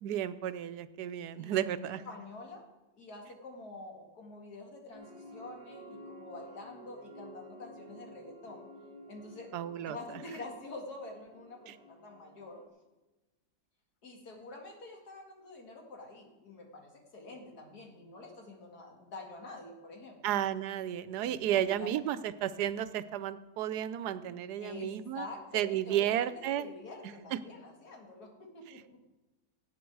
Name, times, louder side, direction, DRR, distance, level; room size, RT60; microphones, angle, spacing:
voice 1, 0.0-2.0 9.5-10.0 11.7-11.8 20.2-25.3 25.5-26.7 27.3-27.4, right 11 dB, 85° right, 14 dB, 1.2 m, -32 dB
voice 2, 1.4-2.7 3.0-8.7 9.1-9.5 9.8-12.6 14.0-20.4 21.4-21.9 24.6-29.0, left 2 dB, 75° left, 1 dB, 2.5 m, -47 dB
sound 1, 4.9-12.7, equal, 45° right, 1.6 m, -52 dB
17.5 x 8.1 x 4.7 m, 1.1 s
omnidirectional pair, 1.7 m